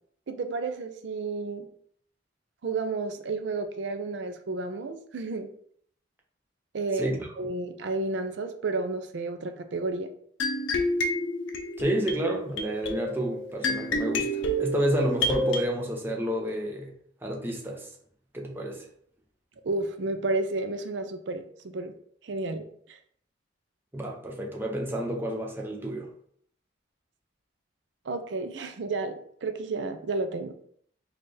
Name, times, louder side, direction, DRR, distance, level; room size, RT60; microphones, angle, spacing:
voice 1, 0.3-1.7 2.6-5.5 6.7-10.1 19.6-21.9 22.2-23.0 28.1-30.5, right 3 dB, 65° right, 7 dB, 0.4 m, -31 dB
voice 2, 6.9-7.3 11.8-16.9 17.2-17.9 18.3-18.8 23.9-26.1, right 1 dB, 10° right, -1 dB, 0.6 m, -30 dB
sound 1, 10.4-15.6, left 1 dB, 75° left, 0.5 m, -29 dB
4.2 x 2.4 x 3.2 m, 0.62 s
head